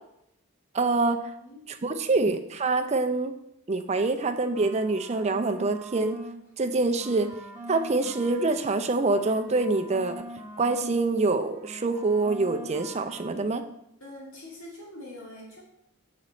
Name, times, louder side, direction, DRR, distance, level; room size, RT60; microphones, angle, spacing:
voice 1, 0.7-1.2 1.8-3.3 3.7-6.2 6.6-7.3 7.7-10.2 10.6-13.6, right 3 dB, 30° right, 7 dB, 0.5 m, -25 dB
sound 1, 4.1-6.4 6.7-11.1 11.3-13.4, right 1 dB, 10° right, 1.2 m, -43 dB
voice 2, 14.0-15.6, left 1 dB, 70° left, -4 dB, 2.5 m, -44 dB
6.5 x 5.1 x 4.3 m, 0.80 s
head